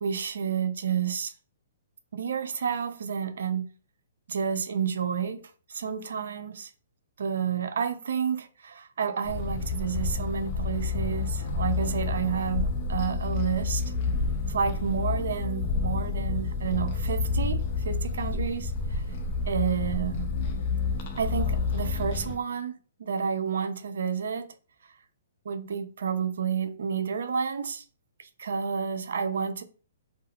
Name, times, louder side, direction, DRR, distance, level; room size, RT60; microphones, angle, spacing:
voice 1, 0.0-1.3 2.1-3.7 4.3-5.4 5.7-6.7 7.2-13.9 14.5-19.0 19.5-20.3 21.2-24.5 25.5-27.8 28.2-29.6, right 7 dB, 70° right, 0.4 m, -30 dB
sound 1, 9.2-22.4, left 4 dB, 40° left, 0.5 m, -29 dB
2.3 x 2.1 x 3.4 m
hypercardioid pair, 130°, 0 cm